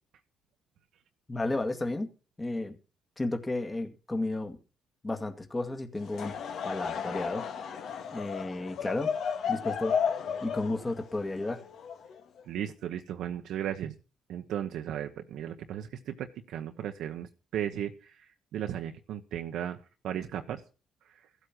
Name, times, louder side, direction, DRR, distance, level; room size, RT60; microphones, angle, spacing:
voice 1, 1.3-2.1 2.4-2.8 3.2-4.6 5.0-6.4 6.6-7.5 8.1-9.1 9.5-10.0 10.4-11.6, left 2 dB, 20° left, 7 dB, 1.9 m, -32 dB
Laughter / Crowd, 6.0-12.4, left 7 dB, 65° left, 2.0 m, -34 dB
voice 2, 12.5-13.9 14.3-19.8 20.0-20.6 21.1-21.2, right 10 dB, 75° right, 5 dB, 1.0 m, -36 dB
15.0 x 8.3 x 6.0 m, 0.35 s
supercardioid pair, 60°, 0 cm